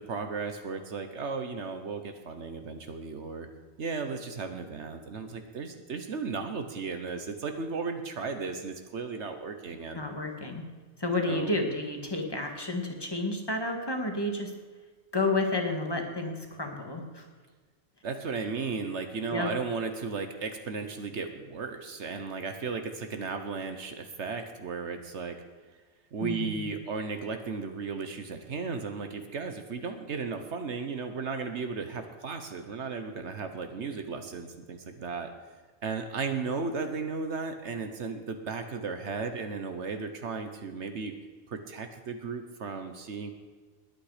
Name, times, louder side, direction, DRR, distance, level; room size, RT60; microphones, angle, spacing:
voice 1, 0.1-3.5 3.8-10.0 11.2-11.6 18.0-25.4 26.1-35.3 35.8-41.1 41.5-43.3, right 4 dB, 75° right, 7 dB, 1.4 m, -35 dB
voice 2, 9.9-10.6 11.0-14.5 15.1-17.3 19.3-19.5 26.2-26.7, left 2 dB, 20° left, 3 dB, 2.0 m, -31 dB
20.0 x 9.2 x 5.0 m, 1.4 s
omnidirectional pair, 1.2 m